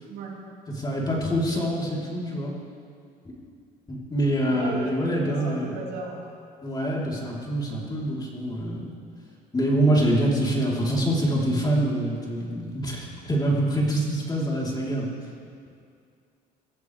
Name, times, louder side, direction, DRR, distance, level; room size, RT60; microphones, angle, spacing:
voice 1, 0.1-0.4 4.4-6.3, right 3 dB, 75° right, -5 dB, 4.6 m, -35 dB
voice 2, 0.7-2.5 3.9-5.7 6.6-8.9 9.5-15.1, right 1 dB, 25° left, -4 dB, 3.9 m, -25 dB
24.0 x 15.5 x 3.5 m, 2.3 s
cardioid pair, 110°, 17 cm